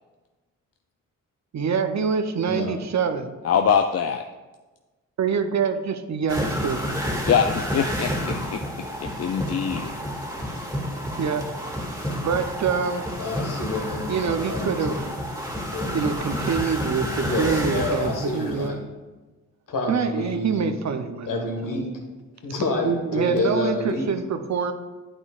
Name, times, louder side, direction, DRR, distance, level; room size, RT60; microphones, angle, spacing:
voice 1, 1.5-3.3 5.2-6.8 11.2-11.5 12.2-13.1 14.1-15.1 15.9-18.8 19.9-21.4 21.6-21.8 22.8-24.7, right 6 dB, 55° right, 8 dB, 0.7 m, -25 dB
voice 2, 3.4-4.2 7.3-9.9, left 7 dB, 50° left, 7 dB, 0.5 m, -23 dB
sound 1, 6.3-18.7, equal, 10° right, 1.9 m, -30 dB
voice 3, 13.2-15.0 15.7-15.9 17.2-18.8 19.7-20.8 21.2-21.9 22.4-24.1, left 2 dB, 80° left, 2 dB, 1.5 m, -28 dB
8.8 x 8.4 x 2.4 m, 1.2 s
cardioid pair, 55°, 32 cm